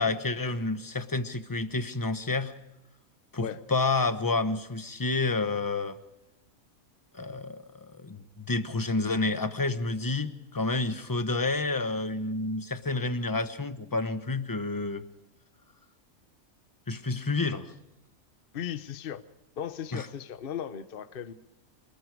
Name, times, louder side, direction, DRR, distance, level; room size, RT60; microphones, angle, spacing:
voice 1, 0.0-2.5 3.3-6.0 7.1-15.0 16.9-17.7 19.9-20.1, left 3 dB, 15° left, 1.0 m, -29 dB
voice 2, 18.5-19.2 19.6-21.3, left 9 dB, 45° left, 1.0 m, -36 dB
28.0 x 20.0 x 4.8 m
omnidirectional pair, 1.5 m